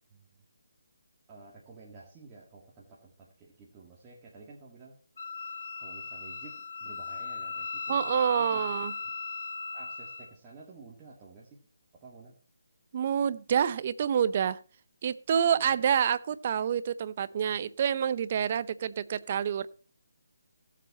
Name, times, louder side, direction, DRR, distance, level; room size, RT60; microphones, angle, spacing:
voice 1, 1.3-5.0 5.8-8.8 9.7-11.7 11.9-12.3 15.5-15.7, right 4 dB, 20° right, 1.9 m, -51 dB
Wind instrument woodwind instrument, 5.2-10.3, left 5 dB, 50° left, 1.6 m, -38 dB
voice 2, 7.9-8.9 12.9-14.6 15.0-19.7, right 8 dB, 35° right, 0.6 m, -27 dB
16.0 x 7.4 x 4.2 m
figure-of-eight pair, 160°, 0 cm